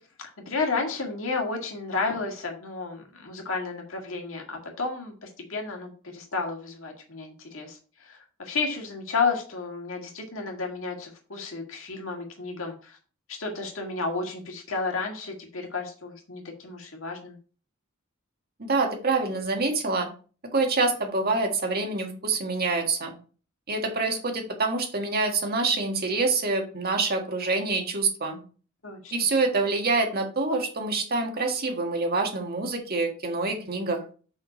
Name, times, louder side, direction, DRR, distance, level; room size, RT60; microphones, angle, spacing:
voice 1, 0.5-13.0 13.3-17.4 28.8-29.1, left 4 dB, 75° left, 2 dB, 1.9 m, -32 dB
voice 2, 18.6-20.1 20.5-23.1 23.7-28.4 29.1-34.0, right 3 dB, 50° right, 2 dB, 1.7 m, -26 dB
5.8 x 5.1 x 5.0 m, 0.39 s
head